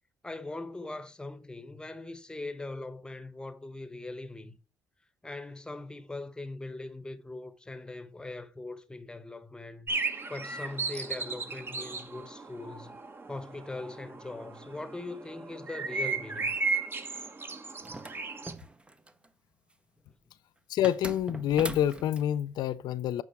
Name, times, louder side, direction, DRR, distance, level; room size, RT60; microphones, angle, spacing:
voice 1, 0.2-4.6 5.2-10.0 10.3-13.0 13.3-16.6, left 2 dB, 10° left, 1.0 m, -41 dB
sound 1, 9.9-18.5, right 4 dB, 30° right, 1.1 m, -35 dB
sound 2, 17.8-19.3 20.8-22.3, right 2 dB, 15° right, 0.6 m, -41 dB
voice 2, 20.7-23.2, left 11 dB, 75° left, 0.4 m, -27 dB
8.3 x 4.7 x 4.6 m
cardioid pair, 85°, 7 cm